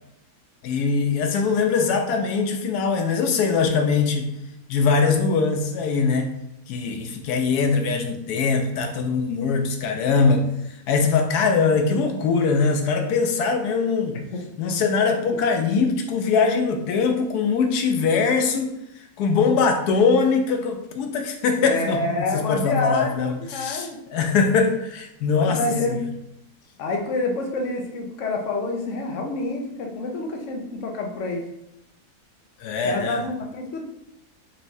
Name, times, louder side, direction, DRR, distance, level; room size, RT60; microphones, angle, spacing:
voice 1, 0.6-4.3 4.7-6.3 6.7-10.5 10.9-14.2 14.6-18.8 19.2-22.0 22.3-25.6 26.0-26.1 32.6-33.2, left 5 dB, 85° left, 5 dB, 1.1 m, -22 dB
voice 2, 21.6-24.0 25.3-26.0 26.8-31.5 32.8-33.8, left 3 dB, 60° left, 1 dB, 0.9 m, -27 dB
4.4 x 3.0 x 2.6 m, 0.81 s
omnidirectional pair, 1.6 m